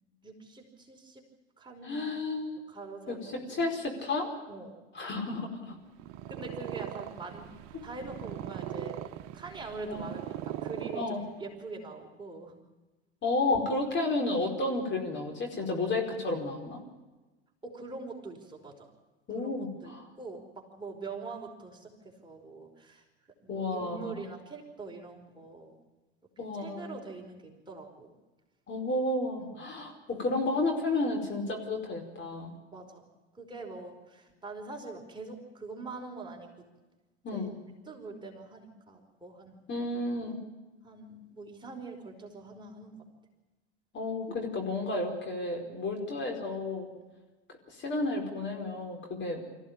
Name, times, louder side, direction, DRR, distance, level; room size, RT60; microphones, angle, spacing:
voice 1, 0.2-1.2 1.6-2.1 2.7-3.4 4.5-4.7 5.7-5.8 6.3-7.5 7.8-9.0 9.3-12.6 17.6-18.9 19.3-23.1 23.4-25.8 26.4-28.1 29.4-29.6 32.7-33.1 33.3-36.5 37.3-37.5 37.9-39.6 40.8-43.1, right 3 dB, 15° right, 0 dB, 5.2 m, -44 dB
voice 2, 1.8-2.6 3.1-4.3 4.9-5.7 9.8-10.0 10.9-11.2 13.2-16.8 19.3-20.1 23.5-24.2 26.4-26.9 28.7-32.5 37.2-37.5 39.7-40.4 43.9-46.9 47.7-49.4, left 2 dB, 35° left, 3 dB, 4.8 m, -32 dB
Purr, 5.9-11.6, right 12 dB, 55° right, 1.2 m, -40 dB
25.0 x 15.5 x 8.9 m, 1.1 s
hypercardioid pair, 80°, 34 cm